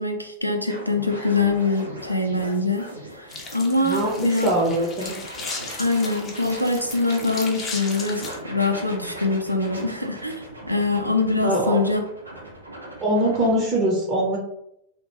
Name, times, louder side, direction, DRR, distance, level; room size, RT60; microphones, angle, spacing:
voice 1, 0.0-2.9 3.5-4.5 5.8-12.0, left 3 dB, 90° left, 4 dB, 0.4 m, -23 dB
sound 1, 0.7-13.5, right 1 dB, 85° right, 0.5 m, -39 dB
sound 2, 3.3-8.4, left 4 dB, 25° left, 0.5 m, -36 dB
voice 2, 3.8-5.2 11.4-11.8 13.0-14.4, right 1 dB, 30° right, -3 dB, 0.7 m, -22 dB
2.2 x 2.1 x 3.0 m, 0.77 s
figure-of-eight pair, 90°, 0 cm